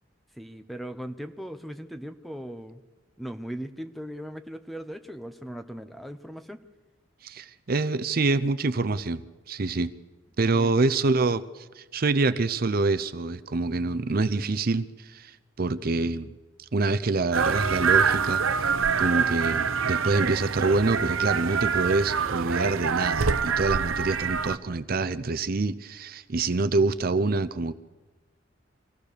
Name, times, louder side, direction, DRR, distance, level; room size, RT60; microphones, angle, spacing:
voice 1, 0.3-2.8 3.2-6.6 10.5-10.7, equal, ahead, 8 dB, 0.8 m, -38 dB
voice 2, 7.2-9.2 9.5-9.9 10.4-16.3 16.6-18.7 19.0-27.7, right 3 dB, 45° right, 12 dB, 0.6 m, -26 dB
sound 1, 17.3-24.6, right 6 dB, 85° right, 0.7 m, -25 dB
24.5 x 16.5 x 6.8 m, 1.2 s
head